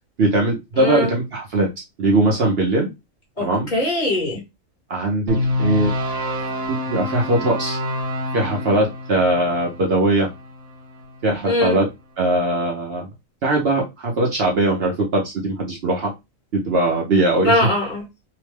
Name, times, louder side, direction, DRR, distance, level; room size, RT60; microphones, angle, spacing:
voice 1, 0.2-1.7 2.0-2.9 3.4-3.7 4.9-5.9 6.7-7.8 8.3-10.3 11.2-11.9 12.2-13.1 13.4-16.1 16.5-17.7, right 2 dB, 55° right, 0 dB, 0.8 m, -20 dB
voice 2, 0.8-1.1 3.4-3.5 3.7-4.4 11.4-11.8 17.4-18.0, left 2 dB, 35° left, 0 dB, 1.2 m, -20 dB
sound 1, 5.3-11.5, left 1 dB, 75° right, 1.2 m, -27 dB
2.9 x 2.2 x 3.1 m, 0.23 s
omnidirectional pair, 1.4 m